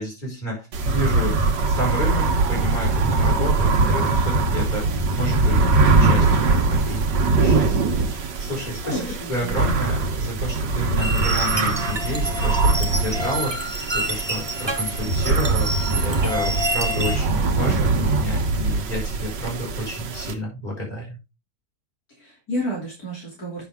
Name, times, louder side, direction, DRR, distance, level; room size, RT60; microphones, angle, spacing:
voice 1, 0.0-1.4 1.7-5.7 6.0-7.1 7.4-13.7 13.9-21.2, equal, 25° left, -2 dB, 5.5 m, -30 dB
sound 1, 0.7-20.3, right 3 dB, 85° right, 1.8 m, -22 dB
voice 2, 8.8-9.6 22.1-23.6, equal, 60° left, -3 dB, 3.3 m, -31 dB
sound 2, 11.0-17.2, right 1 dB, 20° right, 1.1 m, -28 dB
8.8 x 6.8 x 3.5 m, 0.27 s
omnidirectional pair, 1.8 m